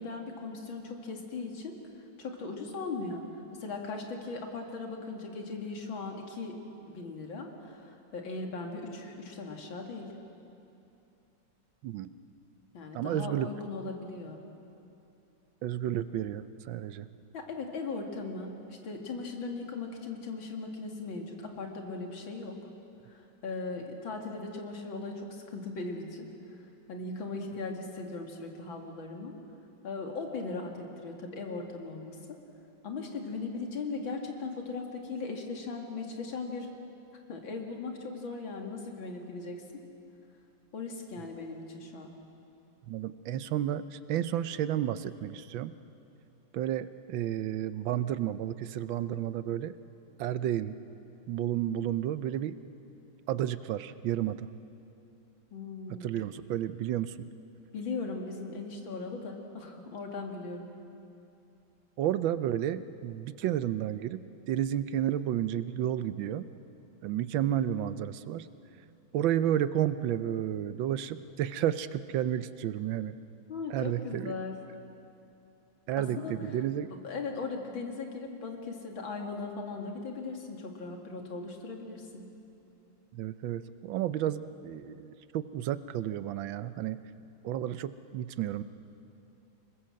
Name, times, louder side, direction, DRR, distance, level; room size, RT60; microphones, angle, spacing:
voice 1, 0.0-1.8 2.2-3.3 3.5-6.6 6.9-10.1 12.7-14.4 17.3-22.6 23.1-26.3 26.9-29.3 29.8-32.4 32.8-36.7 37.3-39.8 40.7-42.1 55.5-56.1 57.7-60.7 73.5-74.5 76.0-76.6 76.9-82.2, left 3 dB, 80° left, 2 dB, 3.0 m, -38 dB
voice 2, 12.9-13.5 15.6-17.1 42.9-45.7 46.5-49.8 50.2-50.8 51.3-52.6 53.3-54.5 55.9-57.3 62.0-66.5 67.0-68.5 69.1-73.1 73.7-74.3 75.9-76.9 83.1-87.0 87.4-88.6, right 11 dB, 80° right, 14 dB, 1.5 m, -31 dB
25.5 x 21.0 x 7.7 m, 2.8 s
omnidirectional pair, 2.1 m